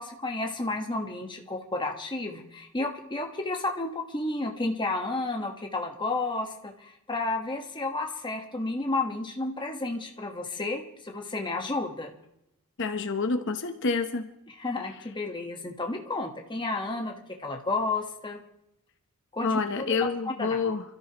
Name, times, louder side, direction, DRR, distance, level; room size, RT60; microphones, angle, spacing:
voice 1, 0.0-12.1 14.6-18.4 19.3-20.6, left 2 dB, 20° left, 2 dB, 1.3 m, -32 dB
voice 2, 12.8-14.3 19.4-20.8, left 4 dB, 55° left, 6 dB, 0.9 m, -28 dB
28.5 x 13.5 x 3.0 m, 0.85 s
head